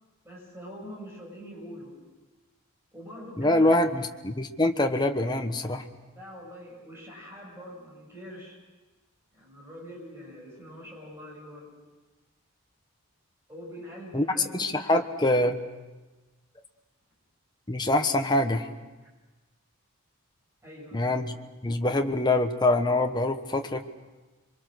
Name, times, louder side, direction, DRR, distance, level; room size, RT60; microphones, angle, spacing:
voice 1, 0.2-1.9 2.9-3.8 6.1-8.6 9.3-11.7 13.5-14.9 20.6-21.2, equal, 10° right, -2 dB, 6.7 m, -44 dB
voice 2, 3.4-5.9 14.1-14.2 14.5-15.6 17.7-18.7 20.9-21.3 21.6-23.8, left 1 dB, 20° left, 5 dB, 1.2 m, -24 dB
27.0 x 23.5 x 6.4 m, 1.2 s
head